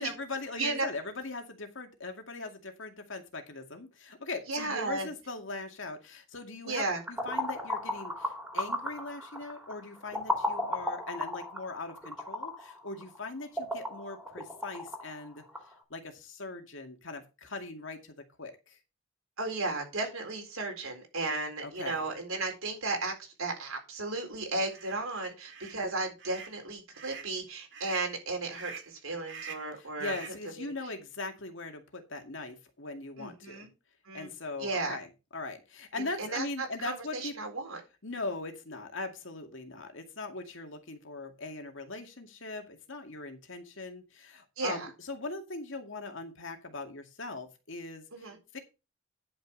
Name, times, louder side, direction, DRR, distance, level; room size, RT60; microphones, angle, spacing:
voice 1, 0.0-15.4 15.9-18.8 21.6-22.1 29.8-33.7 34.1-37.4 38.0-48.6, left 3 dB, 70° left, 5 dB, 2.2 m, -40 dB
voice 2, 0.5-0.8 4.5-5.1 6.7-7.0 19.4-30.1 33.2-33.7 34.1-34.3 34.6-35.0 36.0-37.8 44.6-44.9 48.1-48.4, right 3 dB, 90° right, 3 dB, 4.1 m, -34 dB
sound 1, 6.8-15.7, left 1 dB, 5° right, 2.9 m, -36 dB
sound 2, 24.7-24.9 25.4-25.8 26.2-26.6 26.9-27.3 27.7-28.1 28.5-28.9 29.3-29.7 30.0-30.4, right 6 dB, 60° right, 2.0 m, -45 dB
10.5 x 6.1 x 5.4 m, 0.29 s
head